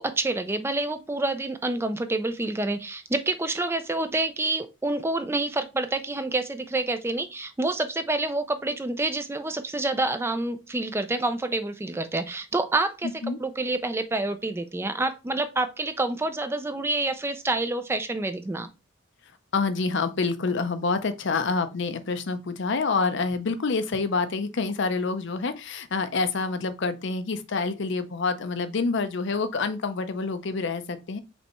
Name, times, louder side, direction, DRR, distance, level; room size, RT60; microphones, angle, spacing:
voice 1, 0.0-13.1 13.4-18.7, right 2 dB, 10° right, 0.4 m, -28 dB
voice 2, 19.5-31.2, left 4 dB, 60° left, 0.6 m, -27 dB
5.2 x 3.3 x 3.0 m
head